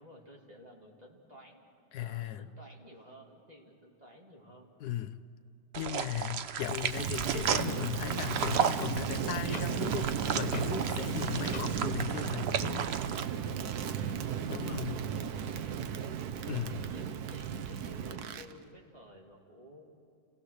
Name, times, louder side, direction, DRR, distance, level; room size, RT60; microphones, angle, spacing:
voice 1, 0.0-1.6 2.0-4.7 11.1-11.6 13.0-19.9, equal, 20° right, -1 dB, 2.6 m, -54 dB
voice 2, 1.9-2.5 4.8-5.2 5.7-12.9 14.5-15.0 16.5-16.8, left 11 dB, 65° left, 12 dB, 1.1 m, -37 dB
sound 1, 5.7-13.2, right 8 dB, 80° right, 0.5 m, -34 dB
Clock, 6.6-11.8, left 4 dB, 30° left, 0.8 m, -46 dB
Crackle, 6.9-18.5, right 8 dB, 60° right, 1.2 m, -35 dB
29.5 x 16.5 x 6.7 m, 2.4 s
omnidirectional pair, 2.0 m